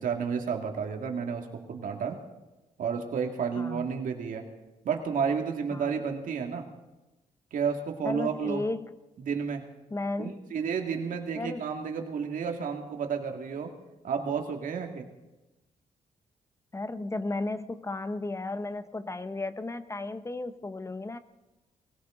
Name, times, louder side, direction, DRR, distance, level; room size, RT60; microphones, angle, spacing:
voice 1, 0.0-2.2 2.8-4.4 4.8-6.6 7.5-8.6 9.2-9.6 10.2-13.7 14.0-15.1, right 6 dB, 75° right, 3 dB, 2.1 m, -31 dB
voice 2, 3.6-3.9 5.7-6.0 8.0-8.9 9.9-10.4 11.4-11.6 16.7-21.2, left 2 dB, 20° left, 12 dB, 0.7 m, -34 dB
21.0 x 16.5 x 3.8 m, 1.1 s
cardioid pair, 90°, 14 cm